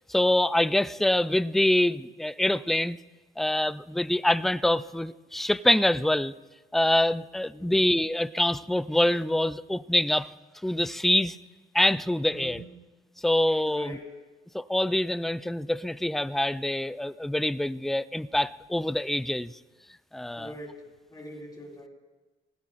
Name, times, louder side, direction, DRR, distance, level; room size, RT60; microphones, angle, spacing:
voice 1, 0.1-3.0 3.4-6.3 6.7-10.3 10.6-11.4 11.7-12.6 13.2-14.0 14.5-19.6 20.1-20.5, left 1 dB, ahead, 15 dB, 0.3 m, -25 dB
voice 2, 7.5-7.8 12.3-12.7 13.6-14.2 20.3-21.9, equal, 20° left, -1 dB, 4.1 m, -43 dB
20.0 x 16.0 x 2.5 m, 1.2 s
cardioid pair, 90°, 20 cm